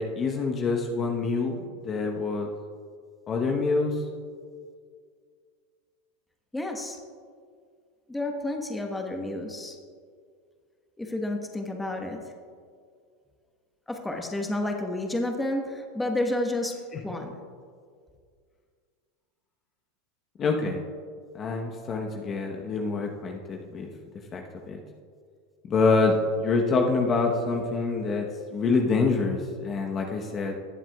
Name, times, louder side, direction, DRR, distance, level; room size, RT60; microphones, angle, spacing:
voice 1, 0.0-1.6 1.8-2.5 3.3-4.0 16.9-17.0 20.4-20.8 21.3-23.9 24.3-24.8 25.7-30.6, left 4 dB, 35° left, 2 dB, 1.0 m, -26 dB
voice 2, 6.5-7.0 8.1-9.8 11.0-12.2 13.9-16.7 17.0-17.4, left 1 dB, 10° left, 3 dB, 1.2 m, -30 dB
19.0 x 7.4 x 2.3 m, 2.1 s
hypercardioid pair, 95°, 0 cm